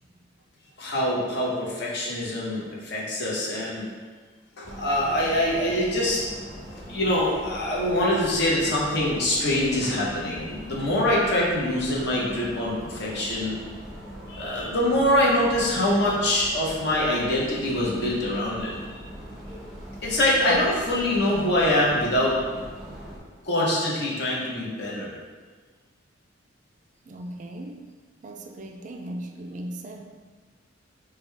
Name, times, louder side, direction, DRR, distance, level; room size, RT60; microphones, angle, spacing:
voice 1, 0.8-3.9 4.6-6.2 6.9-13.6 14.3-19.0 20.0-22.3 23.4-25.1, left 1 dB, 60° left, -5 dB, 0.9 m, -24 dB
sound 1, 4.6-23.2, equal, ahead, 0.8 m, -41 dB
voice 2, 27.1-27.8 28.2-30.0, right 1 dB, 40° right, 3 dB, 0.3 m, -37 dB
5.0 x 2.3 x 3.3 m, 1.5 s
head